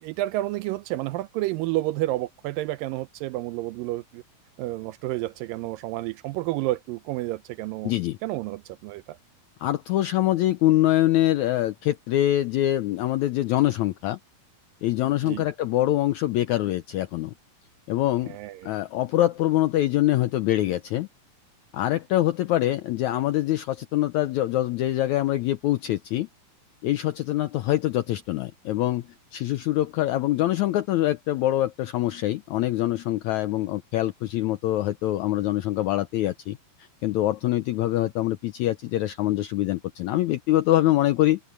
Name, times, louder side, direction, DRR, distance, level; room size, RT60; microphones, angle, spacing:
voice 1, 0.0-4.2 4.6-7.9 8.2-9.2 15.2-15.4 18.3-18.7, right 17 dB, 80° right, 2.2 m, -30 dB
voice 2, 7.8-8.2 9.6-14.2 14.8-17.3 17.9-18.4 18.6-21.1 21.7-26.3 26.8-29.0 29.3-36.6 37.0-41.4, left 14 dB, 90° left, 1.7 m, -24 dB
omnidirectional pair, 4.1 m